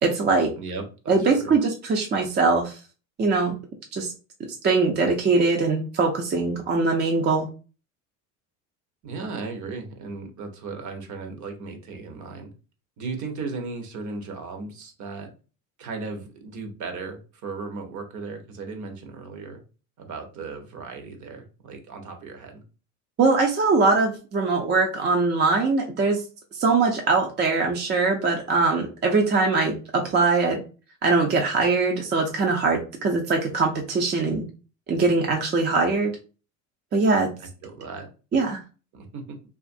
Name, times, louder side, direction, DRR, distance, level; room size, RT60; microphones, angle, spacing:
voice 1, 0.0-0.5 1.1-2.8 3.2-3.6 3.9-4.1 4.6-7.5 23.2-26.2 26.5-30.6 31.0-34.4 34.9-36.1 36.9-37.3 38.3-38.6, right 3 dB, 25° right, 1 dB, 0.5 m, -22 dB
voice 2, 0.6-1.5 9.0-12.5 13.0-15.3 15.8-19.6 20.0-22.6 37.4-38.1 38.9-39.4, right 4 dB, 45° right, 5 dB, 0.8 m, -36 dB
2.5 x 2.5 x 2.5 m, 0.34 s
supercardioid pair, 90°, 41 cm